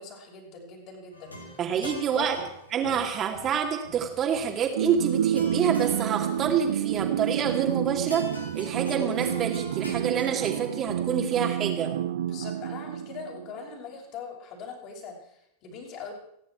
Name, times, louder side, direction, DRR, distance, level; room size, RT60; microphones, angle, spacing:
voice 1, 0.0-1.5 1.8-2.4 2.8-3.0 12.2-16.1, left 5 dB, 40° left, -1 dB, 6.1 m, -41 dB
sound 1, 1.1-11.2, left 1 dB, 80° left, 3.7 m, -44 dB
voice 2, 1.6-2.4 2.7-8.3 8.5-11.9, right 7 dB, 30° right, 2 dB, 2.3 m, -27 dB
sound 2, 4.8-13.5, right 10 dB, 60° right, 1.0 m, -29 dB
29.0 x 10.5 x 4.6 m, 0.74 s
figure-of-eight pair, 90°, 0 cm